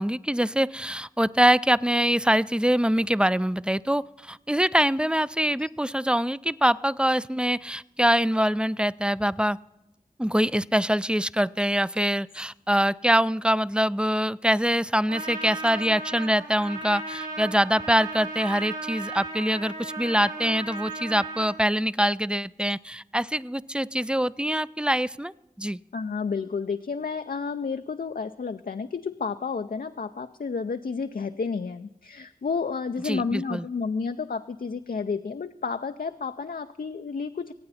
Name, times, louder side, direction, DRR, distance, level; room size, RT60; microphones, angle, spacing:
voice 1, 0.0-9.6 10.2-25.3 25.6-25.8 33.0-33.7, equal, 5° right, 19 dB, 0.4 m, -24 dB
Trumpet, 15.1-21.6, right 3 dB, 80° right, 4.0 m, -36 dB
voice 2, 25.9-37.5, left 5 dB, 75° left, 8 dB, 0.5 m, -31 dB
25.0 x 8.7 x 4.2 m, 0.97 s
wide cardioid pair, 45°, 15 cm